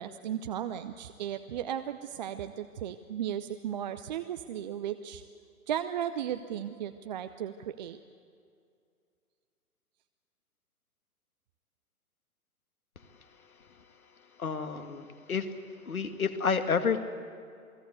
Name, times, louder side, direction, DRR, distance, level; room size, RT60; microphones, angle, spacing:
voice 1, 0.0-5.2 5.7-8.0, right 10 dB, 30° right, 9 dB, 0.7 m, -35 dB
voice 2, 14.4-15.5 15.9-17.0, left 5 dB, 70° left, 7 dB, 2.2 m, -30 dB
28.5 x 20.0 x 8.2 m, 2.3 s
figure-of-eight pair, 120°, 45 cm